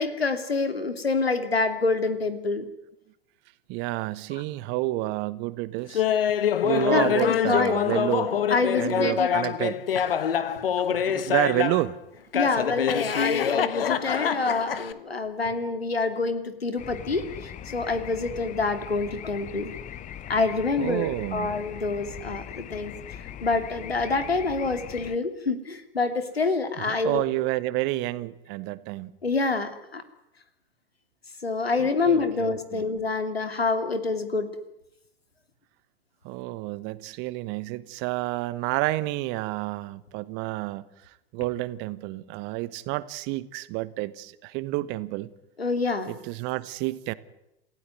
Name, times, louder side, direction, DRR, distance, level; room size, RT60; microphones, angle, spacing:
voice 1, 0.0-2.6 4.3-4.4 6.9-7.8 8.5-9.3 12.3-19.7 20.3-27.2 29.2-30.0 31.4-34.5 45.6-46.1, left 3 dB, 85° left, 2.9 m, -27 dB
voice 2, 3.7-6.0 6.6-8.4 8.8-9.8 10.8-12.0 20.8-21.5 26.8-29.1 31.8-32.8 36.2-40.8 41.3-45.3 46.1-47.1, right 18 dB, 40° right, 1.3 m, -29 dB
Laughter, 5.9-11.9 12.3-14.9, left 9 dB, 70° left, 1.6 m, -25 dB
sound 1, 16.8-25.2, left 10 dB, 25° left, 1.2 m, -40 dB
28.0 x 15.5 x 9.6 m
figure-of-eight pair, 100°, 30 cm